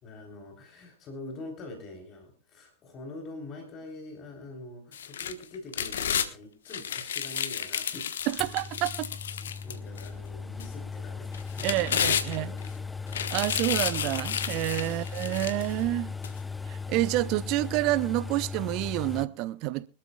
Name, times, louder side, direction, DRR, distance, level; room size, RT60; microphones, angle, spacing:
voice 1, 0.0-8.1 8.4-8.6 9.4-12.8 14.9-15.0, left 2 dB, 30° left, 3.7 m, -44 dB
sound 1, 4.9-6.3 6.7-10.1 10.6-10.7 11.3-12.7 13.1-15.7 16.2-16.3, left 8 dB, 65° left, 1.3 m, -31 dB
voice 2, 8.3-9.1 11.6-12.5 13.3-16.1 16.7-19.9, right 18 dB, 40° right, 0.6 m, -28 dB
sound 2, 8.4-19.3, left 5 dB, 10° left, 0.6 m, -37 dB
24.5 x 13.0 x 2.4 m
figure-of-eight pair, 90°, 0 cm